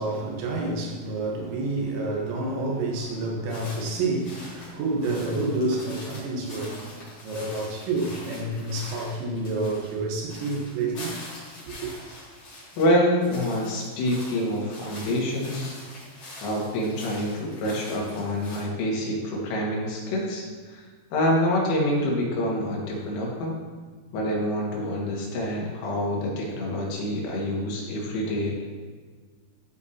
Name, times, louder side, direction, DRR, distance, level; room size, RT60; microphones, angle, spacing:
voice 1, 0.0-11.2 11.7-11.8, right 2 dB, 75° right, 3.4 m, -29 dB
sound 1, 3.5-12.9 13.2-18.6, left 1 dB, 40° left, 2.6 m, -44 dB
voice 2, 12.8-15.7 16.4-20.9 21.1-23.6 24.1-28.5, left 1 dB, 90° left, 4.1 m, -26 dB
13.0 x 5.0 x 2.8 m
omnidirectional pair, 5.6 m